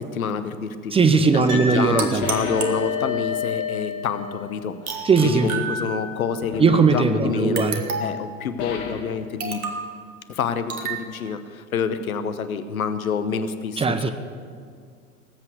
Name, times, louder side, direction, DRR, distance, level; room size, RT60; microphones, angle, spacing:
voice 1, 0.1-0.9 1.3-7.7 8.0-9.6 10.3-14.1, left 6 dB, 75° left, 11 dB, 1.0 m, -28 dB
voice 2, 0.9-2.2 5.0-5.5 6.6-7.8 13.8-14.1, right 5 dB, 15° right, 9 dB, 0.6 m, -18 dB
Piano, 1.5-2.7 3.0-3.1, left 1 dB, 55° right, 3.5 m, -33 dB
sound 1, 2.0-3.4 4.9-6.3 7.6-8.3 9.4-9.9 10.7-11.0, right 3 dB, 70° right, 1.7 m, -30 dB
sound 2, 2.2-4.8 6.4-6.7 8.6-9.2, left 8 dB, 45° left, 1.9 m, -30 dB
19.0 x 8.2 x 6.6 m, 2.1 s
figure-of-eight pair, 85°, 43 cm